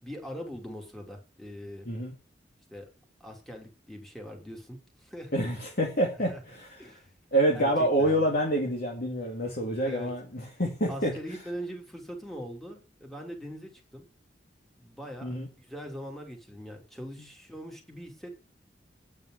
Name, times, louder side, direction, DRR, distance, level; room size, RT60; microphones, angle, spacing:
voice 1, 0.0-1.9 2.7-2.9 3.2-5.5 6.3-6.4 6.8-7.1 7.5-8.3 9.8-10.1 10.9-14.1 14.8-18.4, equal, ahead, 1 dB, 2.9 m, -41 dB
voice 2, 5.3-6.8 7.3-11.1 15.2-15.5, right 1 dB, 55° left, -1 dB, 2.2 m, -27 dB
9.2 x 5.4 x 7.9 m, 0.31 s
head